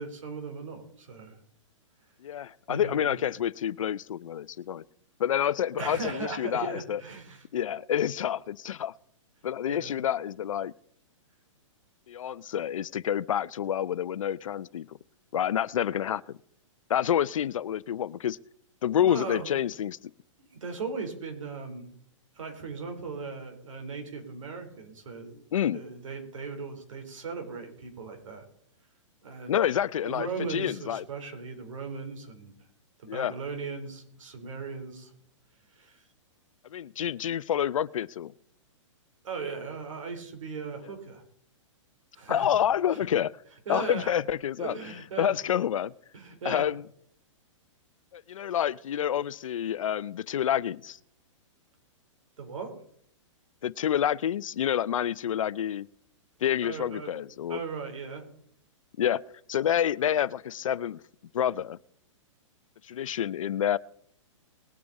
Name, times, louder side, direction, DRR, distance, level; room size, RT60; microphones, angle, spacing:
voice 1, 0.0-1.4 2.7-3.2 5.8-7.4 9.7-10.0 19.0-19.6 20.4-21.9 22.3-28.4 29.2-29.6 30.0-32.6 33.0-35.1 35.7-36.0 39.2-41.2 42.1-42.5 42.9-43.1 43.7-44.1 44.6-45.4 46.1-46.7 52.4-52.7 56.6-57.2 57.5-58.2, right 4 dB, 75° right, 4 dB, 3.9 m, -38 dB
voice 2, 2.2-4.8 5.2-7.0 7.5-8.9 9.4-10.7 12.1-14.9 15.3-16.2 16.9-18.4 18.8-20.0 25.5-25.8 29.5-31.0 33.1-33.3 36.7-38.3 42.3-43.3 43.7-44.7 45.2-45.9 46.4-46.8 48.1-51.0 53.6-55.9 56.4-57.6 59.0-59.2 59.5-61.0 61.3-61.8 62.9-63.8, left 10 dB, 80° left, 19 dB, 0.6 m, -28 dB
20.0 x 8.6 x 4.1 m, 0.65 s
hypercardioid pair, 145°, 17 cm